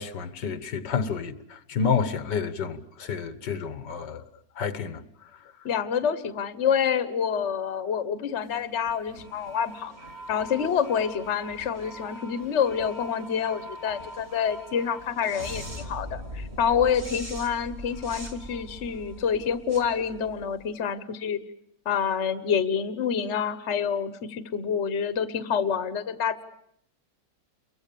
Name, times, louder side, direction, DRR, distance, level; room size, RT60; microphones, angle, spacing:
voice 1, 0.0-4.3 4.6-5.0, left 6 dB, 85° left, 2.0 m, -29 dB
voice 2, 5.6-9.9 10.3-21.4 21.8-26.4, left 7 dB, 45° left, 1.4 m, -27 dB
sound 1, 8.4-20.8, equal, 35° right, 4.0 m, -42 dB
29.5 x 23.5 x 6.9 m
omnidirectional pair, 1.8 m